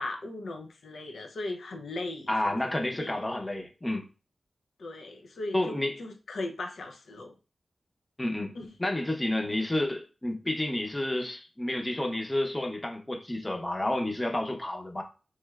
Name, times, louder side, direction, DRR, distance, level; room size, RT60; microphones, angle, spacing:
voice 1, 0.0-2.5 2.8-3.2 4.8-7.3 8.5-8.7, left 2 dB, 85° left, 0.5 m, -38 dB
voice 2, 2.3-4.1 5.5-6.0 8.2-8.5 8.8-15.0, left 1 dB, 20° left, 0.7 m, -30 dB
3.1 x 2.9 x 2.3 m
cardioid pair, 50°, 0 cm